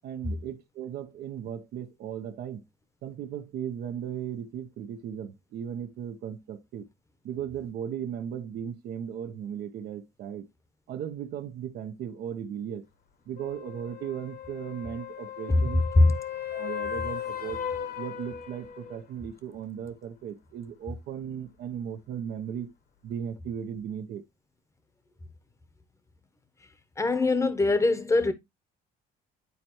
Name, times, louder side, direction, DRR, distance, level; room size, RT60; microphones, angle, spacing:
voice 1, 0.0-2.6 3.0-6.9 7.2-10.5 10.9-12.8 13.3-15.8 16.5-17.6 18.0-22.7 23.0-24.2, right 9 dB, 70° right, 0.9 m, -36 dB
sound 1, 13.4-19.0 23.1-23.2, left 9 dB, 65° left, 1.7 m, -37 dB
voice 2, 27.0-28.3, left 2 dB, 15° left, 0.9 m, -21 dB
9.6 x 4.3 x 3.0 m
cardioid pair, 110°, 17 cm